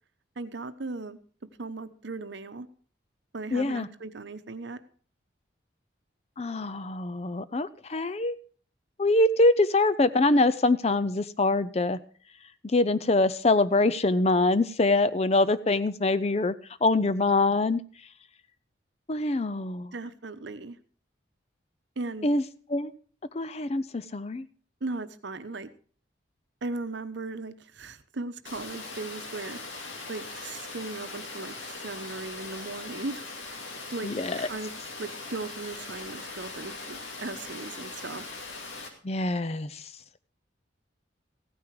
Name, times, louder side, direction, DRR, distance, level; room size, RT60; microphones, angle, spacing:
voice 1, 0.4-1.2 1.6-2.7 3.3-4.8 19.9-20.8 22.0-22.3 24.8-25.7 26.6-29.6 30.1-33.2 33.9-34.7 35.0-38.2, right 3 dB, 70° right, 11 dB, 0.9 m, -37 dB
voice 2, 3.5-3.9 6.4-8.4 9.0-12.0 12.6-16.6 16.8-17.8 19.1-19.9 22.2-22.4 22.7-22.9 23.3-24.5 34.0-34.5 39.0-39.8, left 2 dB, 35° left, 15 dB, 0.5 m, -24 dB
Water, 28.4-38.9, left 3 dB, 90° left, 2.3 m, -40 dB
15.5 x 9.6 x 4.7 m, 0.42 s
head